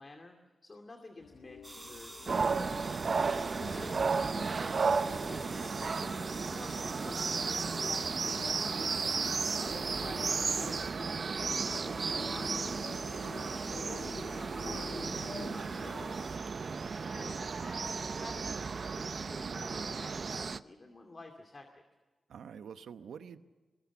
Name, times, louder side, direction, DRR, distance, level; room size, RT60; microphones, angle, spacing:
voice 1, 0.0-2.8 3.6-8.7 9.5-13.3 13.7-16.5 17.1-21.7, left 2 dB, 40° left, 4 dB, 2.4 m, -50 dB
sound 1, 1.2-16.2, left 5 dB, 75° left, 1.3 m, -49 dB
sound 2, 1.6-16.4, right 2 dB, 20° right, 4.3 m, -51 dB
sound 3, 2.3-20.6, right 5 dB, 60° right, 0.7 m, -34 dB
voice 2, 22.3-23.4, right 7 dB, 90° right, 11 dB, 1.0 m, -49 dB
22.5 x 21.0 x 7.1 m, 1.3 s
cardioid pair, 55°, 0 cm